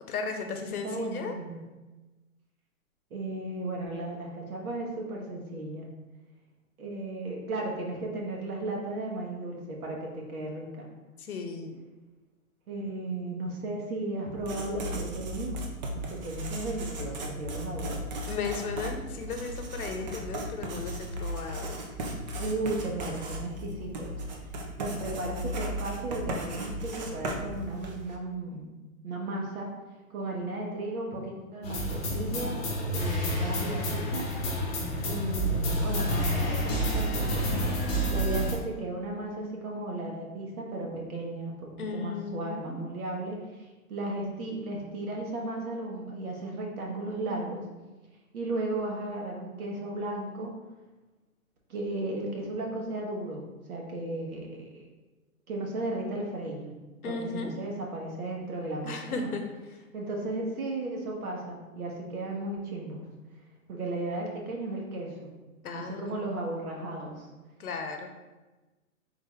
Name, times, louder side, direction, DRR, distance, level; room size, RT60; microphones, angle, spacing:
voice 1, 0.1-1.4 11.2-11.8 18.3-21.8 41.8-42.9 57.0-57.5 58.8-59.4 65.6-66.3 67.6-68.1, left 5 dB, 90° left, 5 dB, 0.8 m, -35 dB
voice 2, 0.8-1.6 3.1-5.8 6.8-10.9 12.7-15.6 15.9-18.0 22.4-28.7 29.0-29.7 30.1-32.6 32.9-34.3 35.0-37.6 38.1-47.6 48.3-50.5 51.7-53.4 53.7-54.8 55.5-56.7 57.0-59.3 59.9-63.0 63.7-65.3 65.7-67.3, right 2 dB, 80° right, -1 dB, 1.4 m, -35 dB
Writing, 14.3-28.1, right 1 dB, 30° right, 0.5 m, -36 dB
sound 1, 31.6-38.5, equal, 15° left, 0.8 m, -29 dB
3.9 x 3.5 x 3.5 m, 1.2 s
hypercardioid pair, 145°, 43 cm